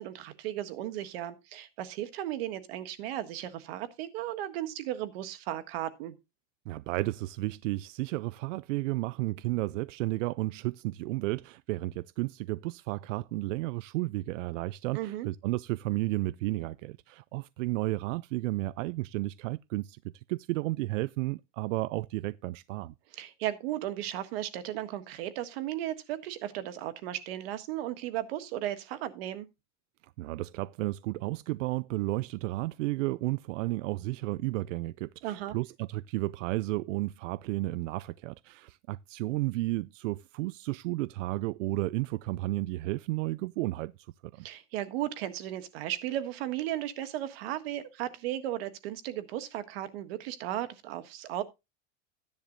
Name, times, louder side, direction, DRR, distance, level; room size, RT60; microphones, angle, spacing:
voice 1, 0.0-6.1 14.9-15.3 23.1-29.5 35.2-35.5 44.4-51.4, right 13 dB, 55° right, 1.5 m, -35 dB
voice 2, 6.7-20.0 20.3-22.9 30.2-43.9 44.3-44.5, right 19 dB, 85° right, 0.5 m, -32 dB
14.0 x 10.5 x 2.6 m
supercardioid pair, 175°, 36 cm